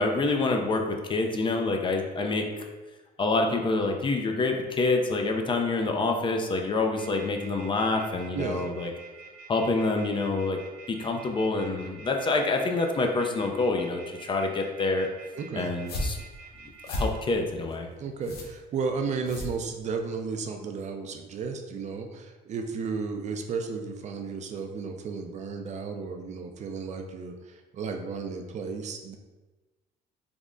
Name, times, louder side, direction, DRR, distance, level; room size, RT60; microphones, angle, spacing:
voice 1, 0.0-2.6 3.2-8.9 9.5-10.6 10.9-15.1 15.5-16.2 16.9-17.9, left 3 dB, 30° left, 3 dB, 0.4 m, -27 dB
sound 1, 7.0-17.1, right 5 dB, 60° right, 0.8 m, -47 dB
voice 2, 8.3-8.7 15.4-15.7 18.0-29.2, right 5 dB, 45° right, 4 dB, 0.4 m, -33 dB
sound 2, 15.7-20.2, left 1 dB, 70° left, 0.7 m, -35 dB
3.4 x 2.1 x 3.6 m, 1.2 s
cardioid pair, 110°, 17 cm